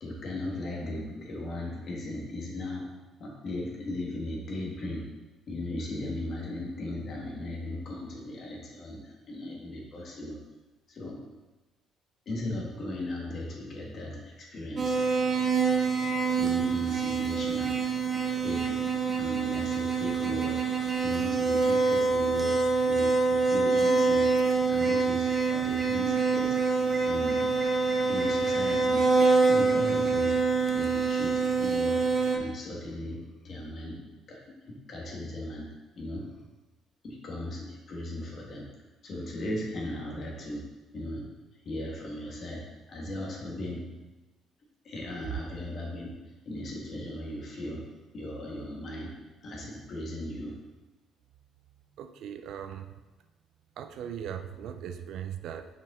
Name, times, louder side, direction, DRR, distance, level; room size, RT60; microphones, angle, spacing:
voice 1, 0.0-2.9 3.2-5.1 5.5-10.4 10.9-11.2 12.2-14.9 16.4-17.8 18.3-18.8 19.1-20.6 21.0-22.6 22.8-24.3 24.7-26.6 27.0-27.6 28.1-29.1 29.4-30.4 30.7-32.0 32.3-36.4 37.0-38.7 39.0-40.6 40.9-43.9 44.8-46.1 46.4-47.9 48.1-49.1 49.4-50.6, left 1 dB, 45° left, -2 dB, 1.4 m, -37 dB
sound 1, 14.8-32.4, right 4 dB, 30° right, 0.7 m, -25 dB
voice 2, 52.0-52.9 53.8-55.7, right 9 dB, 65° right, 8 dB, 0.4 m, -39 dB
5.3 x 5.2 x 3.6 m, 1.1 s
cardioid pair, 130°, 0 cm